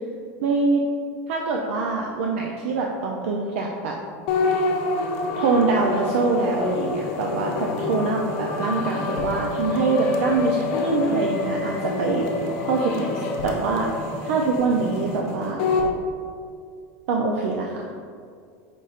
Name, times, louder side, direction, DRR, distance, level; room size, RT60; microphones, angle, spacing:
voice 1, 0.4-0.8 1.3-4.0 5.4-12.3 12.7-13.1 13.4-13.9 14.2-15.6 17.1-17.9, right 4 dB, 75° right, 0 dB, 0.4 m, -24 dB
sound 1, 4.3-15.9, left 3 dB, 60° left, 0.7 m, -27 dB
5.3 x 2.5 x 4.0 m, 2.2 s
supercardioid pair, 155°, 7 cm